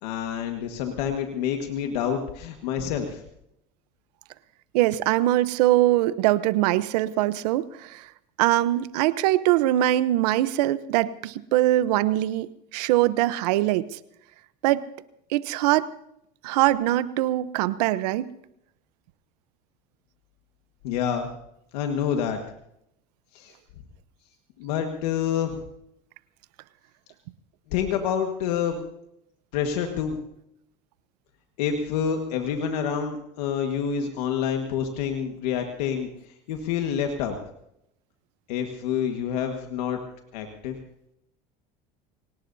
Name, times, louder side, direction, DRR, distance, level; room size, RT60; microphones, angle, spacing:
voice 1, 0.0-3.2 20.8-21.3 21.7-22.4 23.3-23.5 24.6-25.5 27.7-28.8 29.5-30.2 31.6-36.1 36.5-37.4 38.5-40.0 40.3-40.8, left 8 dB, 85° left, 4 dB, 1.7 m, -27 dB
voice 2, 4.7-8.1 8.4-14.0 14.6-14.8 15.3-15.9 16.4-18.3, right 15 dB, 80° right, 15 dB, 0.9 m, -22 dB
24.0 x 18.5 x 2.7 m, 0.78 s
supercardioid pair, 100°, 20 cm